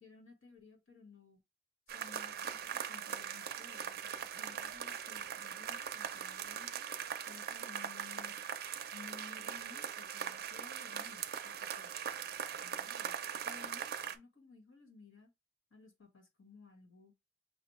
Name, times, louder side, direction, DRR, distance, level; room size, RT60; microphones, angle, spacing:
voice 1, 0.0-1.4 1.9-6.9 7.3-8.3 8.9-12.0 12.6-15.3 15.7-17.1, left 4 dB, 85° left, 1.4 m, -57 dB
sound 1, 1.9-14.2, right 8 dB, 50° right, 0.4 m, -41 dB
5.8 x 2.2 x 3.1 m
head